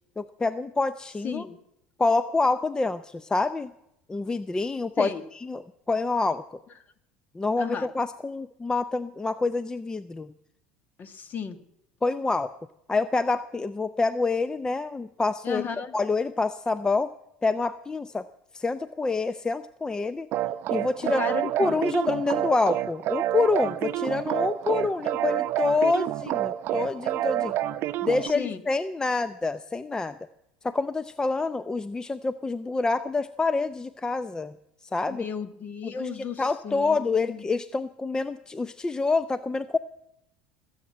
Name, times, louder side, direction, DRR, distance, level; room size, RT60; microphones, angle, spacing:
voice 1, 0.2-1.4 2.0-3.7 4.1-5.1 5.4-6.6 7.3-10.3 12.0-12.5 12.9-15.6 15.9-17.1 17.4-18.2 18.5-20.3 20.7-21.2 21.6-27.5 28.0-30.2 30.6-34.5 34.9-35.3 35.8-39.8, left 3 dB, 15° left, 14 dB, 0.5 m, -27 dB
voice 2, 1.2-1.6 5.0-5.2 7.6-7.9 11.0-11.6 15.4-15.9 21.0-21.8 28.3-28.6 35.1-37.4, left 6 dB, 40° left, 11 dB, 1.5 m, -34 dB
sound 1, 20.3-28.3, right 13 dB, 55° right, 0.7 m, -28 dB
20.5 x 8.0 x 8.6 m, 0.80 s
supercardioid pair, 90°, 5 cm